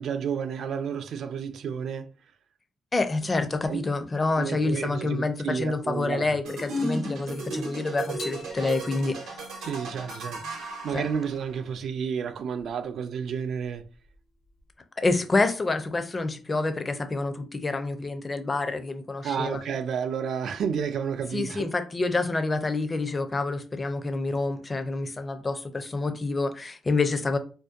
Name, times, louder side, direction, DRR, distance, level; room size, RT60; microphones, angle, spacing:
voice 1, 0.0-2.1 3.7-3.8 4.4-6.3 9.6-13.9 19.2-21.7, right 7 dB, 65° right, 0.3 m, -31 dB
voice 2, 2.9-9.4 10.9-11.1 15.0-19.6 21.3-27.4, left 3 dB, 25° left, 0.4 m, -27 dB
sound 1, 6.4-11.6, right 1 dB, 85° right, 0.7 m, -35 dB
sound 2, 8.2-14.7, left 2 dB, 70° left, 0.6 m, -49 dB
2.6 x 2.1 x 2.4 m
cardioid pair, 90°, 0 cm